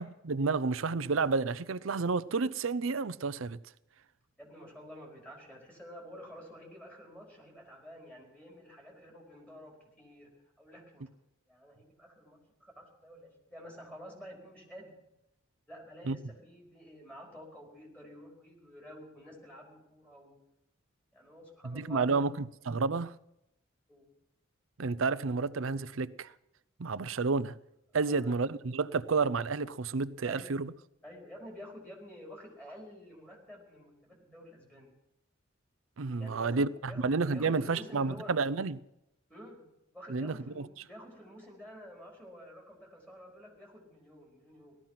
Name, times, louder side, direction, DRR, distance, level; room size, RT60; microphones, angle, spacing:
voice 1, 0.0-3.6 16.1-16.2 21.6-23.1 24.8-26.3 26.8-27.5 27.9-30.7 36.0-38.8 40.1-40.7, right 4 dB, 70° right, 0.6 m, -30 dB
voice 2, 4.4-10.3 10.6-11.1 11.5-14.9 15.7-20.4 21.1-22.3 23.9-24.1 28.0-28.4 30.2-30.5 31.0-34.9 36.2-37.0 37.3-38.3 39.3-39.7 39.9-44.8, equal, 5° left, 4.9 m, -50 dB
18.0 x 13.5 x 5.8 m
head